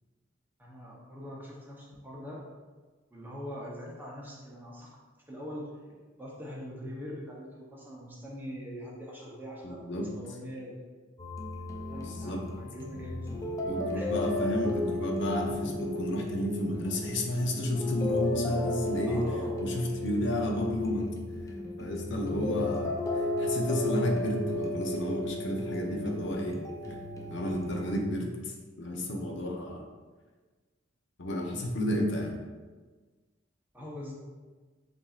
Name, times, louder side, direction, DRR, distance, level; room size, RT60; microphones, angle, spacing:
voice 1, 0.6-2.4 3.1-4.9 5.3-5.7 6.2-9.9 10.1-10.8 11.9-13.5 13.9-14.1 19.1-19.6 22.2-22.7 33.7-34.1, equal, 10° right, -3 dB, 0.7 m, -42 dB
voice 2, 9.6-10.1 12.0-12.4 13.6-19.2 19.6-21.1 21.8-22.9 23.2-26.6 26.9-27.0 27.3-28.5 28.8-29.8 31.2-32.4, left 1 dB, 65° left, 1 dB, 0.7 m, -31 dB
sound 1, 11.2-28.0, left 2 dB, 15° left, 0.4 m, -34 dB
7.1 x 2.6 x 2.4 m, 1.3 s
head